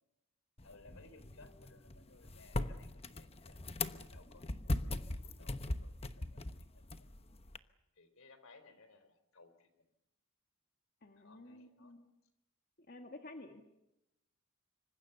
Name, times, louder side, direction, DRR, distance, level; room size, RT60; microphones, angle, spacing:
voice 1, 0.6-3.6 4.1-7.1 8.0-9.9 11.2-12.0, left 3 dB, 70° left, 11 dB, 3.8 m, -62 dB
sound 1, 0.6-7.6, left 2 dB, 30° left, 1.0 m, -40 dB
voice 2, 11.0-12.1 12.9-13.6, left 2 dB, 45° left, 4 dB, 1.9 m, -51 dB
26.5 x 25.0 x 7.0 m, 0.88 s
head